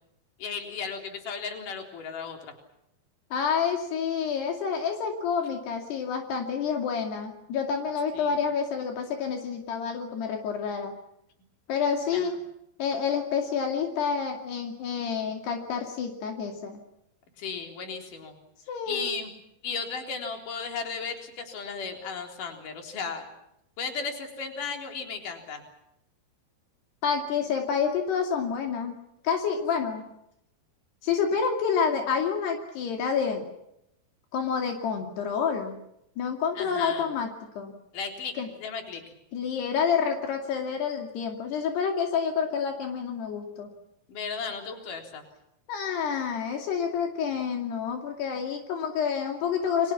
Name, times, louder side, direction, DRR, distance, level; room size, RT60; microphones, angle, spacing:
voice 1, 0.4-2.4 8.1-8.3 12.1-12.3 17.4-18.3 18.9-19.3 19.6-23.2 23.8-25.6 36.6-37.1 37.9-38.3 38.6-39.0 44.1-45.2, left 5 dB, 50° left, 3 dB, 5.1 m, -35 dB
voice 2, 3.3-10.9 11.7-12.4 12.8-16.8 18.7-19.1 27.0-29.0 29.2-30.1 31.0-33.5 34.3-35.8 36.2-37.7 38.4-38.5 39.3-43.7 45.7-49.9, left 6 dB, 75° left, 3 dB, 4.6 m, -28 dB
30.0 x 24.5 x 6.0 m, 0.81 s
omnidirectional pair, 4.7 m